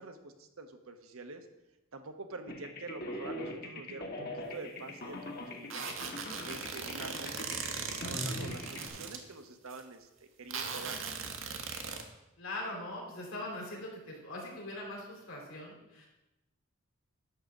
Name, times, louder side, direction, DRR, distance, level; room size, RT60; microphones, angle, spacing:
voice 1, 0.0-1.5 1.9-5.9 6.4-11.0, right 3 dB, 85° right, 7 dB, 1.1 m, -46 dB
sound 1, 2.5-8.9, left 1 dB, 45° left, 1.3 m, -41 dB
sound 2, 5.7-9.2 9.7-9.8 10.5-12.0, right 5 dB, 65° right, 1.2 m, -39 dB
voice 2, 12.4-16.1, left 1 dB, 80° left, -2 dB, 3.7 m, -41 dB
11.5 x 3.8 x 7.2 m, 0.94 s
head